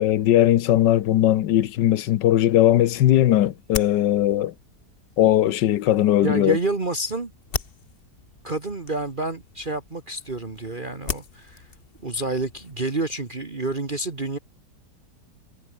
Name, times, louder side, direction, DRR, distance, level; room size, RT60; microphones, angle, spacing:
voice 1, 0.0-4.5 5.2-6.6, left 12 dB, 80° left, 1.5 m, -19 dB
sound 1, 2.6-12.9, left 5 dB, 35° left, 1.3 m, -39 dB
voice 2, 6.2-7.3 8.4-11.7 12.0-14.4, right 2 dB, 30° right, 1.9 m, -28 dB
omnidirectional pair, 1.9 m